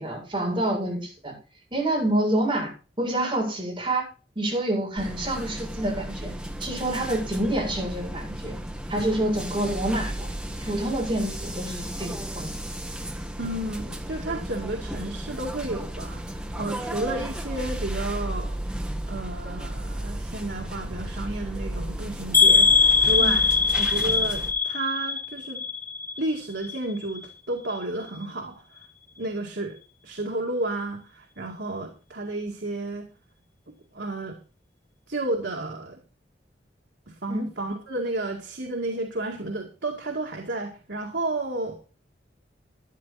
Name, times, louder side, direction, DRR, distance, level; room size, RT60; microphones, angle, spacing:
voice 1, 0.0-1.3 1.7-2.7 3.0-4.0 4.4-6.3 6.6-8.6 8.9-10.3 10.6-12.5 23.2-23.3 37.3-37.4, right 1 dB, 25° right, -2 dB, 7.5 m, -27 dB
sound 1, 5.0-24.5, right 1 dB, 5° right, 1.4 m, -34 dB
voice 2, 13.4-18.6 19.1-22.7 23.0-23.5 23.8-25.6 26.2-28.8 29.2-29.8 30.0-33.1 33.9-34.4 35.1-36.0 37.1-41.7, right 2 dB, 75° right, 1 dB, 2.2 m, -32 dB
sound 2, 22.3-26.3 26.6-27.2 27.7-27.8 28.2-28.3, left 5 dB, 15° left, 3.4 m, -21 dB
13.0 x 10.5 x 4.3 m, 0.35 s
head